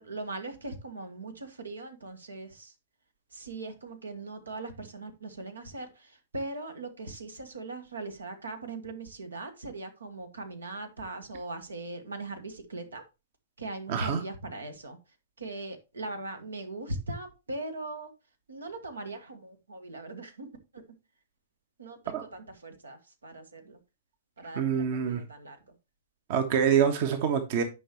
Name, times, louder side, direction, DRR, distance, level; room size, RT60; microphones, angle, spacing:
voice 1, 0.0-2.7 3.3-13.0 13.6-15.0 15.4-18.1 18.5-20.5 20.7-20.8 21.8-23.8 24.4-25.6, right 2 dB, 80° right, 7 dB, 1.6 m, -40 dB
voice 2, 13.9-14.2 22.1-22.2 24.5-25.2 26.3-27.6, right 8 dB, 50° right, 8 dB, 1.2 m, -26 dB
9.9 x 5.4 x 3.1 m, 0.27 s
figure-of-eight pair, 110°, 0 cm